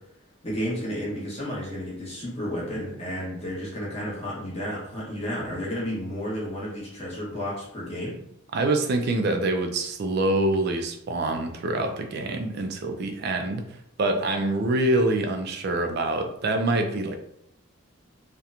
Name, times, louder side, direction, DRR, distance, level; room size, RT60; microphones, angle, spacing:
voice 1, 0.4-8.2, equal, 30° left, -5 dB, 0.8 m, -32 dB
voice 2, 8.5-13.7 14.0-17.2, right 2 dB, 50° right, 5 dB, 0.3 m, -25 dB
2.8 x 2.1 x 2.4 m, 0.75 s
head